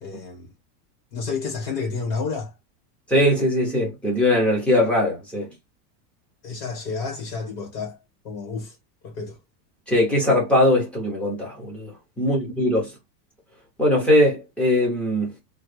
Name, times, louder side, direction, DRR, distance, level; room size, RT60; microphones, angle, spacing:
voice 1, 0.0-0.5 1.1-2.5 6.4-8.0 8.2-8.8 9.0-9.4, left 4 dB, 75° left, 1.8 m, -30 dB
voice 2, 3.1-5.5 9.9-11.9 12.2-12.9 13.8-15.3, left 1 dB, 5° left, 0.6 m, -20 dB
3.2 x 2.5 x 3.1 m
supercardioid pair, 175°, 49 cm